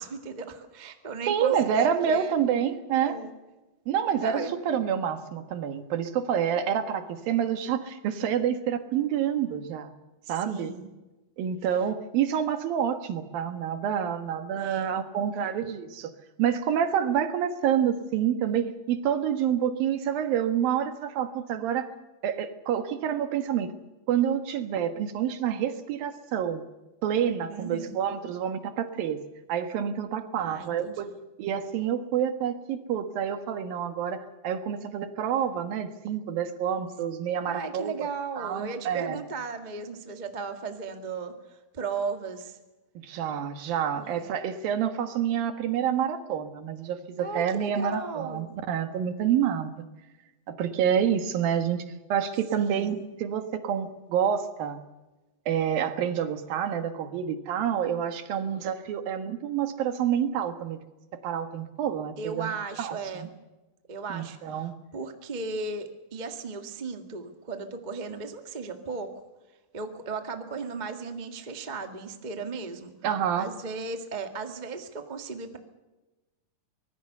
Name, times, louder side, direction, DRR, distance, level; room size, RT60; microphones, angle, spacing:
voice 1, 0.0-2.4 3.0-3.3 4.2-4.6 10.2-10.9 14.5-14.9 27.5-28.0 30.4-31.1 37.4-41.3 41.7-42.6 43.9-44.2 47.2-48.5 52.6-53.0 62.2-63.3 63.9-69.1 69.7-72.9 73.4-75.6, right 4 dB, 35° right, 6 dB, 0.6 m, -36 dB
voice 2, 1.3-3.2 3.9-9.9 10.3-10.7 11.4-16.1 16.4-21.9 22.2-23.7 24.1-26.6 27.0-29.2 29.5-31.1 31.4-38.1 38.4-39.2 43.0-49.9 50.5-51.8 52.1-54.8 55.5-60.8 61.2-62.5 62.8-63.3 64.1-64.8 73.0-73.5, right 9 dB, 70° right, 9 dB, 3.2 m, -28 dB
24.5 x 19.5 x 6.8 m, 1.1 s
omnidirectional pair, 4.4 m